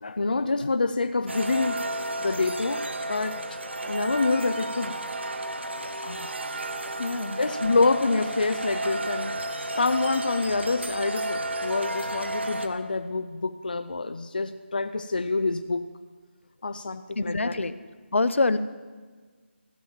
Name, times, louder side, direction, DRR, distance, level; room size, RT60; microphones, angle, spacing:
voice 1, 0.0-1.8 2.2-3.6 3.8-4.9 6.0-6.3 7.4-9.3 9.8-15.9 16.6-17.6, left 3 dB, 45° left, 9 dB, 0.4 m, -27 dB
sound 1, 1.3-12.7, right 1 dB, 65° right, 1.1 m, -32 dB
voice 2, 7.0-7.4 17.2-17.7 18.1-18.6, left 3 dB, 75° left, 13 dB, 0.7 m, -25 dB
15.0 x 7.4 x 7.2 m, 1.5 s
figure-of-eight pair, 180°, 7 cm